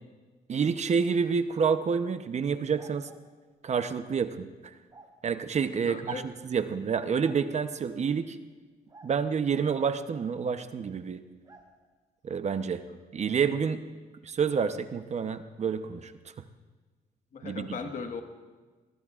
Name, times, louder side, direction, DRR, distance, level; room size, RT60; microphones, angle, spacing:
voice 1, 0.5-3.1 3.6-4.7 5.2-8.4 9.0-11.2 12.2-12.8 13.1-13.8 14.2-16.1 17.4-17.8, right 6 dB, 45° right, 10 dB, 0.8 m, -28 dB
sound 1, 2.7-3.3 4.9-5.1 6.9-7.5 8.9-9.1 11.4-11.7, right 3 dB, 25° right, 3.5 m, -52 dB
voice 2, 5.8-6.3 12.8-13.0 15.2-15.3 17.3-18.2, left 5 dB, 55° left, 5 dB, 1.6 m, -38 dB
23.0 x 19.5 x 2.5 m, 1.3 s
cardioid pair, 95°, 16 cm